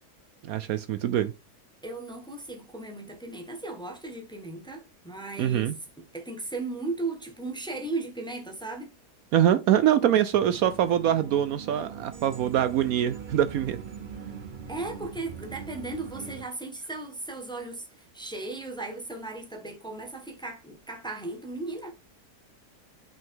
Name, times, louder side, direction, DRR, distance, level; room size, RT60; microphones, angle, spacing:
voice 1, 0.4-1.3 5.4-5.8 9.3-13.8, right 10 dB, 70° right, 1.0 m, -24 dB
voice 2, 1.8-5.7 6.0-8.9 14.7-21.9, right 3 dB, 5° left, 1.1 m, -36 dB
sound 1, 10.3-16.5, right 7 dB, 45° right, 0.6 m, -41 dB
5.5 x 5.5 x 3.6 m
omnidirectional pair, 1.7 m